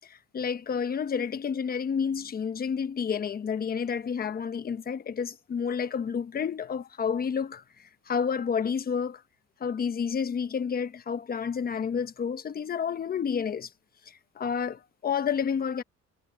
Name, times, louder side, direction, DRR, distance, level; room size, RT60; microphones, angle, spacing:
voice 1, 0.1-7.6 8.1-9.2 9.6-13.7 14.1-15.8, left 6 dB, 30° left, 1.1 m, -30 dB
cardioid pair, 130°, 29 cm